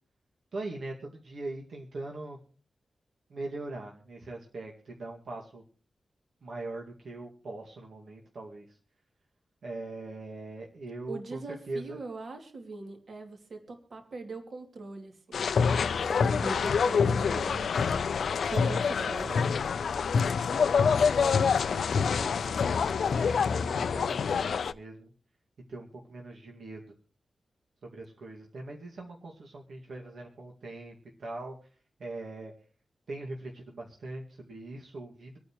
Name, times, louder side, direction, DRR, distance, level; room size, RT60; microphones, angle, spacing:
voice 1, 0.5-2.4 3.3-5.6 6.4-8.8 9.6-11.4 11.7-12.0 16.4-16.7 19.0-19.4 20.5-22.5 23.2-25.1 25.7-26.8 27.8-31.6 32.0-32.5 33.1-35.4, right 2 dB, 70° right, 0 dB, 2.0 m, -41 dB
voice 2, 11.1-18.1 18.4-19.5, right 3 dB, 55° right, 4 dB, 2.5 m, -41 dB
sound 1, 15.3-24.7, left 6 dB, 80° left, 0.5 m, -26 dB
26.0 x 9.4 x 3.1 m, 0.40 s
wide cardioid pair, 165°, 0 cm